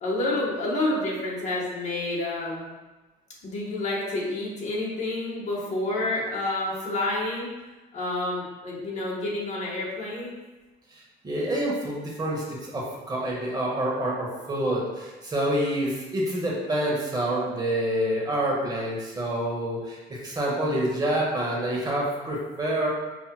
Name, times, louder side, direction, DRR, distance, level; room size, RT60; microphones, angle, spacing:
voice 1, 0.0-2.6 3.4-7.5 7.9-10.3, left 2 dB, 45° left, -4 dB, 1.2 m, -29 dB
voice 2, 10.9-22.9, right 1 dB, 25° right, -3 dB, 1.0 m, -27 dB
5.3 x 2.8 x 2.2 m, 1.1 s
cardioid pair, 110°, 17 cm